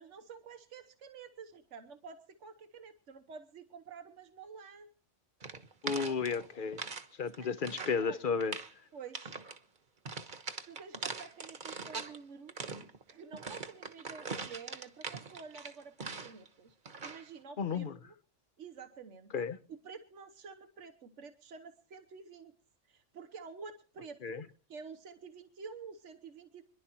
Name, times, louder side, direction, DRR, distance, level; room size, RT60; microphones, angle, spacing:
voice 1, 0.0-4.9 5.9-6.2 7.2-8.2 8.9-9.4 10.1-12.7 13.1-16.8 17.0-18.1 18.6-19.3 19.7-22.5 22.9-24.4 24.7-26.6, right 5 dB, 90° right, 1.4 m, -50 dB
sound 1, 5.4-7.1 7.3-8.0 8.4-8.7 9.1-9.6 10.1-12.2 12.5-16.5 16.9-17.3, right 4 dB, 45° right, 1.2 m, -42 dB
voice 2, 5.8-6.8 7.2-8.6 17.6-17.9 19.3-19.6 24.2-24.4, left 5 dB, 50° left, 1.0 m, -33 dB
26.0 x 11.0 x 3.0 m
omnidirectional pair, 1.2 m